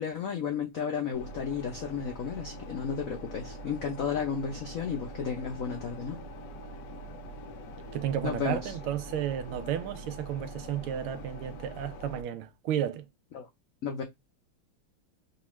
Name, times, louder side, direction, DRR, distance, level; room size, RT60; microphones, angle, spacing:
voice 1, 0.0-6.2 8.2-8.7 13.3-13.5 13.8-14.0, left 6 dB, 85° left, 0.7 m, -33 dB
sound 1, 1.1-12.2, right 1 dB, 65° left, 1.2 m, -43 dB
voice 2, 7.9-13.1, right 10 dB, 80° right, 1.4 m, -32 dB
5.3 x 2.4 x 3.0 m
omnidirectional pair, 2.4 m